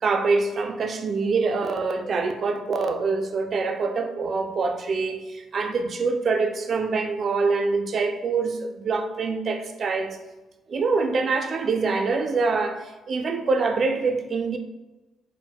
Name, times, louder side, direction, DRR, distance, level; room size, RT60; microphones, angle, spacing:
voice 1, 0.0-10.2 10.7-14.6, right 4 dB, 50° right, 0.3 m, -25 dB
4.2 x 2.0 x 2.2 m
cardioid pair, 90°, 0 cm